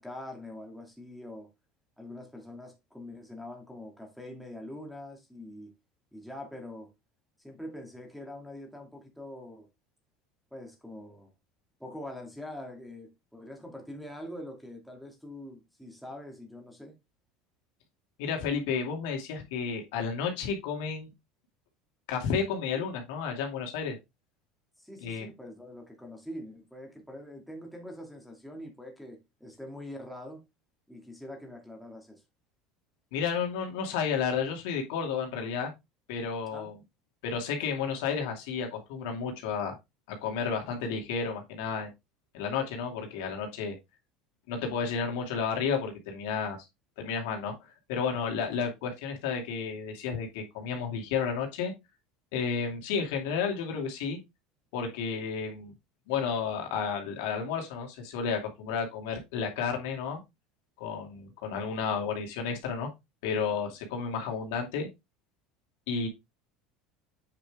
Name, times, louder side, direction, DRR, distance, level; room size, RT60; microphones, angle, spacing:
voice 1, 0.0-1.5 2.0-5.7 6.1-6.9 7.4-9.7 10.5-11.3 11.8-17.0 24.8-30.4 30.9-32.2 36.5-36.7, left 1 dB, ahead, 2.5 m, -44 dB
voice 2, 18.2-21.1 22.1-24.0 25.0-25.3 33.1-35.7 36.1-36.7 37.2-39.7 40.1-41.9 42.3-43.7 44.5-46.6 47.0-47.5 47.9-51.7 52.3-54.2 54.7-55.7 56.1-60.2 60.8-62.9 63.2-64.9 65.9-66.1, left 6 dB, 75° left, 2.5 m, -32 dB
8.6 x 4.9 x 3.6 m
supercardioid pair, 120°, 0 cm